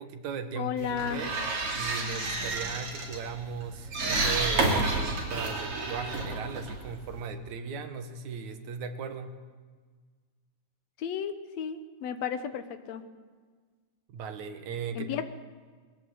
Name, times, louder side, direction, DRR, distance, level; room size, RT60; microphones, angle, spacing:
voice 1, 0.0-1.4 1.7-9.4 14.1-15.2, right 5 dB, 80° right, 8 dB, 2.7 m, -37 dB
voice 2, 0.6-1.2 11.0-13.0 14.9-15.2, left 8 dB, 65° left, 9 dB, 2.3 m, -33 dB
sound 1, 0.8-7.3, right 3 dB, 50° right, 3.9 m, -31 dB
21.5 x 17.0 x 7.8 m, 1.5 s
omnidirectional pair, 3.3 m